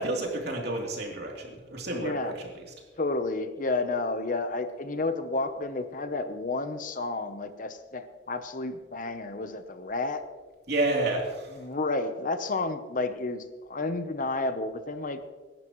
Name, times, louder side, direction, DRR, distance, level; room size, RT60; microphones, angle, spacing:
voice 1, 0.0-2.7 10.7-11.6, right 2 dB, 60° right, -1 dB, 3.2 m, -30 dB
voice 2, 2.0-2.3 3.0-10.2 11.6-15.2, left 3 dB, 45° left, 9 dB, 0.9 m, -31 dB
24.5 x 11.5 x 3.1 m, 1.4 s
head